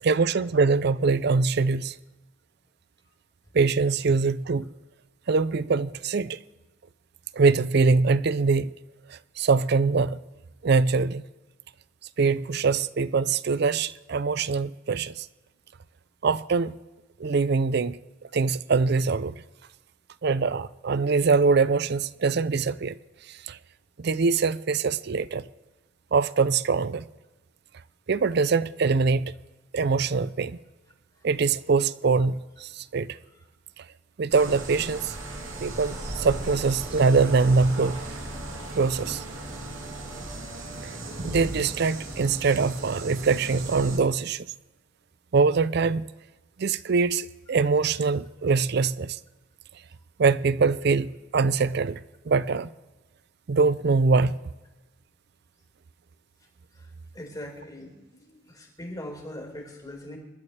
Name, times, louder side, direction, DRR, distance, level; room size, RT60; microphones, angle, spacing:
voice 1, 0.0-2.0 3.5-4.7 5.3-6.4 7.3-8.7 9.1-10.2 10.6-11.2 12.2-15.3 16.2-16.7 17.2-18.0 18.3-19.4 20.2-23.0 23.3-23.6 24.0-25.4 26.1-27.0 28.1-29.3 29.7-30.6 31.2-33.2 33.8-33.9 34.2-35.1 35.6-38.0 38.8-39.2 40.8-41.0 41.2-44.5 45.3-46.1 46.6-49.2 50.2-52.0 52.3-52.7 53.5-54.4, right 4 dB, 55° right, 0.5 m, -23 dB
sound 1, 34.3-44.0, right 1 dB, 85° right, 3.0 m, -37 dB
voice 2, 57.1-60.2, left 1 dB, 20° left, 4.2 m, -40 dB
27.0 x 13.0 x 3.3 m
head